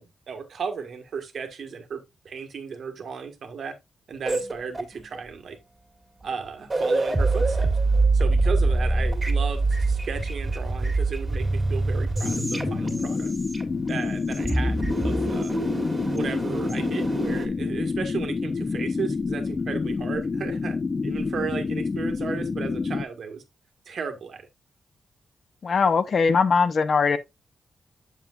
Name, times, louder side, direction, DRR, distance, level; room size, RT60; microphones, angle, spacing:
voice 1, 0.0-3.7 4.1-5.6 6.2-7.7 8.1-13.3 13.9-15.6 16.1-20.8 21.0-23.4 23.8-24.5, right 6 dB, 65° right, 1.6 m, -35 dB
sound 1, 4.2-5.2 6.2-6.3 6.6-14.0 14.3-17.5, right 2 dB, 20° right, 2.1 m, -25 dB
sound 2, 12.2-23.0, left 4 dB, 35° left, 0.5 m, -28 dB
voice 2, 25.6-27.2, left 5 dB, 55° left, 0.9 m, -20 dB
7.5 x 7.3 x 2.4 m
cardioid pair, 100°, 0 cm